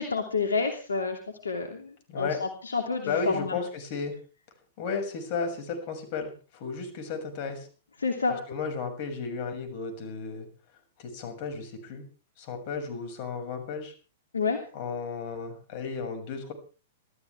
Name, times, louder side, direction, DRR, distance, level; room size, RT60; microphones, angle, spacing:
voice 1, 0.0-3.6 8.0-8.3 14.3-14.6, left 4 dB, 80° left, 4 dB, 2.8 m, -29 dB
voice 2, 2.1-2.4 3.0-4.2 4.8-7.7 8.5-10.5 11.0-12.0 12.4-13.9 14.7-16.5, left 5 dB, 45° left, 6 dB, 6.6 m, -33 dB
27.0 x 14.0 x 3.5 m, 0.37 s
figure-of-eight pair, 105°, 0 cm